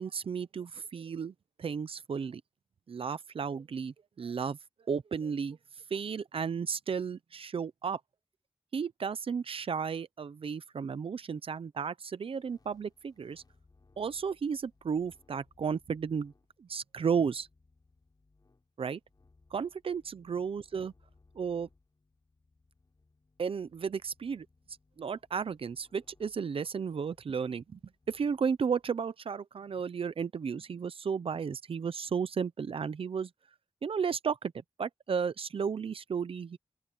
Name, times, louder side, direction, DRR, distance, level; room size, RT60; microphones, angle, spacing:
voice 1, 0.0-2.4 2.9-4.6 4.9-5.6 5.9-8.0 8.7-13.4 14.0-16.3 16.6-17.5 18.8-19.0 19.5-20.9 21.3-21.7 23.4-24.5 25.0-27.8 28.1-33.3 33.8-36.6, right 6 dB, 80° right, 0.7 m, -33 dB
sound 1, 12.3-28.9, left 3 dB, 45° left, 5.3 m, -67 dB
open air
wide cardioid pair, 90°, 9 cm